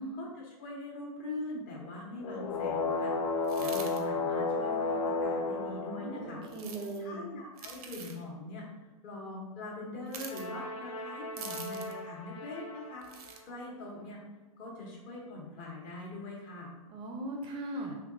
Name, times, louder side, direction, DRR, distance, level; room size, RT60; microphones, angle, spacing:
voice 1, 0.1-6.4 7.0-8.7 9.0-13.1 13.4-14.2 14.6-16.7, left 2 dB, 45° left, -3 dB, 1.1 m, -42 dB
sound 1, 2.2-6.8 10.2-13.0, left 3 dB, 65° left, 0.5 m, -34 dB
sound 2, 3.4-4.0 6.5-7.0 7.6-8.2 10.1-10.5 11.4-12.0 13.0-13.4, right 6 dB, 80° right, 0.6 m, -45 dB
voice 2, 5.9-7.3 16.9-17.9, right 2 dB, 25° right, 1 dB, 0.4 m, -39 dB
3.4 x 2.9 x 2.4 m, 1.1 s
hypercardioid pair, 115°, 19 cm